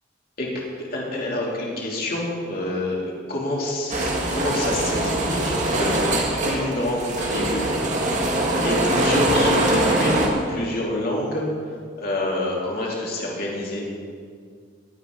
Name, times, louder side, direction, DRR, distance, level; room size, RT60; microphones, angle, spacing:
voice 1, 0.8-6.0 6.4-8.0 8.6-11.5 12.0-13.8, left 1 dB, 50° left, -4 dB, 3.1 m, -27 dB
sound 1, 3.9-10.3, right 1 dB, 40° right, 1.8 m, -22 dB
20.0 x 9.1 x 4.0 m, 2.1 s
head